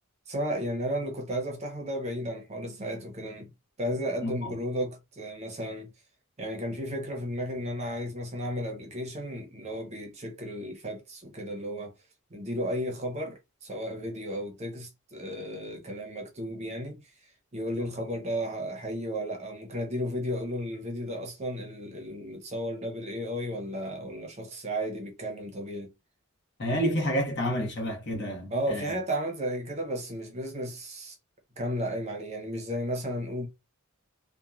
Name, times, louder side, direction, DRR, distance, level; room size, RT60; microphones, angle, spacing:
voice 1, 0.3-3.5 3.8-5.9 6.4-11.9 12.3-25.9 28.5-31.2 31.6-33.5, equal, 30° right, 0.7 m, -34 dB
voice 2, 4.2-4.6 26.6-28.9, equal, 50° left, 1.0 m, -29 dB
2.9 x 2.2 x 2.4 m
head